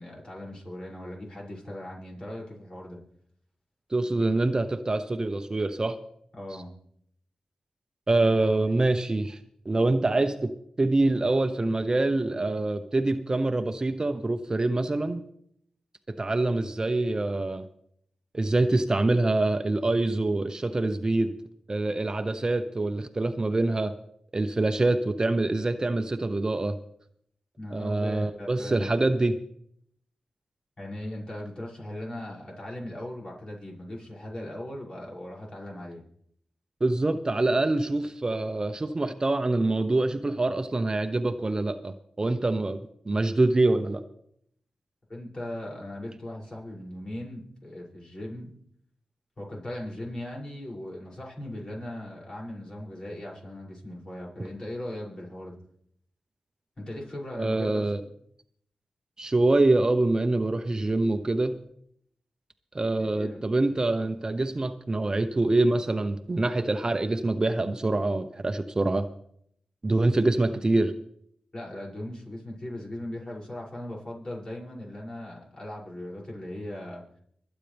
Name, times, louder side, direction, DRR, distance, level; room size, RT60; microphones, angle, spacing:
voice 1, 0.0-3.0 6.3-6.7 27.6-29.1 30.8-36.0 45.1-48.5 49.4-55.6 56.8-57.8 63.0-63.5 71.5-77.0, left 1 dB, 45° left, -4 dB, 6.7 m, -38 dB
voice 2, 3.9-6.0 8.1-9.4 9.6-10.5 10.8-15.2 16.1-17.6 18.3-21.3 21.7-23.9 24.3-26.8 27.7-29.4 36.8-42.8 43.1-44.0 57.4-58.0 59.2-61.6 62.7-69.1 69.8-70.9, right 2 dB, 35° right, 9 dB, 0.9 m, -25 dB
25.5 x 9.1 x 3.5 m, 0.68 s
cardioid pair, 55°, 2 cm